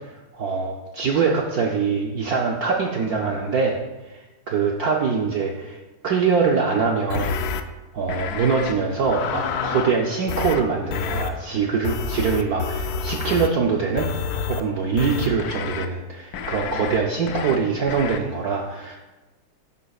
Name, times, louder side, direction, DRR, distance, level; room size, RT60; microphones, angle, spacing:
voice 1, 0.3-3.8 4.0-5.8 6.0-7.5 7.9-19.0, right 5 dB, 65° right, 0 dB, 1.0 m, -23 dB
sound 1, 7.1-7.6 8.1-8.7 9.0-10.0 10.3-10.6 10.9-11.3 11.8-13.5 14.0-14.6 15.0-15.9 16.3-17.0 17.3-17.6 17.9-18.2, left 6 dB, 80° left, 0.8 m, -28 dB
11.0 x 9.3 x 2.4 m, 1.1 s
omnidirectional pair, 2.3 m